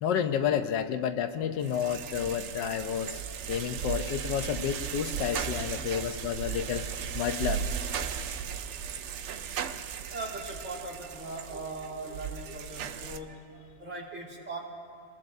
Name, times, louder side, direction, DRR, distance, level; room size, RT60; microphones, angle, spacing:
voice 1, 0.0-3.2 3.5-7.7, left 8 dB, 85° left, 8 dB, 1.4 m, -30 dB
sound 1, 1.6-13.2, right 8 dB, 85° right, 0.6 m, -36 dB
voice 2, 5.8-6.3 10.1-14.6, right 2 dB, 40° right, -2 dB, 2.4 m, -40 dB
26.5 x 21.0 x 2.6 m, 2.2 s
omnidirectional pair, 1.9 m